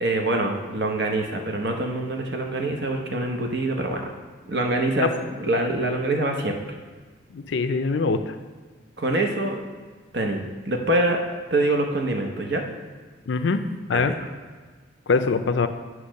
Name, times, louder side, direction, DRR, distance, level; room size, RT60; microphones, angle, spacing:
voice 1, 0.0-4.1 4.5-5.1 5.4-6.6 9.0-9.6 10.1-11.3 11.5-12.6 13.9-14.1, right 2 dB, 55° right, 3 dB, 0.9 m, -25 dB
voice 2, 7.3-8.3 13.3-13.6 13.9-14.1 15.1-15.7, left 4 dB, 70° left, 9 dB, 0.5 m, -23 dB
8.2 x 3.1 x 6.4 m, 1.5 s
head